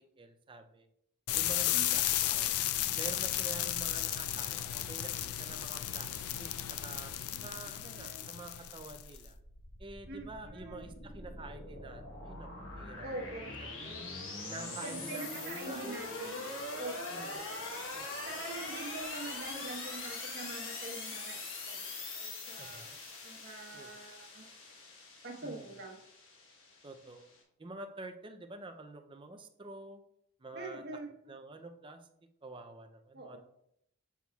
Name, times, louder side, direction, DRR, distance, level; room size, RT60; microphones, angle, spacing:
voice 1, 0.2-0.9 1.3-2.6 3.0-7.1 7.4-9.4 9.8-13.3 13.6-14.1 14.5-15.8 17.1-17.4 17.9-18.3 22.6-23.0 23.7-24.0 25.4-25.7 26.8-27.3 27.6-30.0 30.4-30.8 31.3-32.1 32.4-33.4, right 2 dB, 20° right, 6 dB, 0.4 m, -48 dB
sound 1, 1.3-9.2, left 12 dB, 75° left, 0.4 m, -34 dB
voice 2, 7.8-8.2 10.1-10.9 13.0-13.5 14.8-16.4 16.8-17.3 18.2-21.8 22.1-22.8 23.2-24.5 25.2-26.0 30.5-31.3 33.1-33.4, right 2 dB, 45° right, 1 dB, 1.1 m, -44 dB
sound 2, 9.1-27.4, left 2 dB, 60° left, 1.4 m, -43 dB
7.0 x 5.9 x 2.3 m, 0.75 s
head